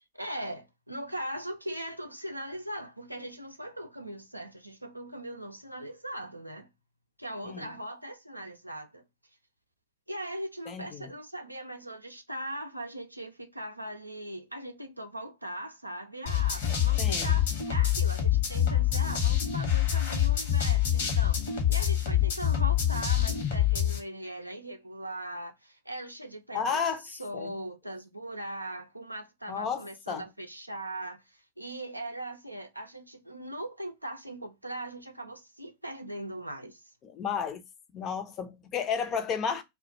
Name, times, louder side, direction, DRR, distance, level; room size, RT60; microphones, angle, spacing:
voice 1, 0.1-6.7 7.2-9.0 10.1-36.8, right 1 dB, 85° right, 0.4 m, -40 dB
voice 2, 10.7-11.1 17.0-17.4 26.5-27.0 27.3-27.5 29.5-30.3 37.0-37.6 37.9-39.6, left 6 dB, 30° left, 0.5 m, -32 dB
sound 1, 16.3-24.0, left 10 dB, 60° left, 0.9 m, -26 dB
2.3 x 2.2 x 3.9 m
figure-of-eight pair, 90°, 0 cm